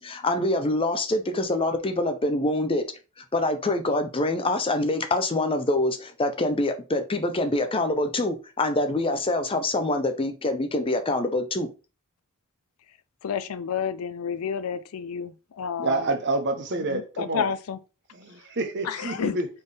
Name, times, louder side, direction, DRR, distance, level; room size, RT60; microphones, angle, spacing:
voice 1, 0.0-2.8 3.3-11.7, left 2 dB, 25° left, 0.6 m, -25 dB
voice 2, 13.2-16.1 16.7-17.8 18.8-19.4, left 7 dB, 75° left, 0.4 m, -30 dB
voice 3, 15.8-17.5 18.2-19.5, right 2 dB, 50° right, 0.9 m, -28 dB
4.3 x 3.5 x 3.4 m
head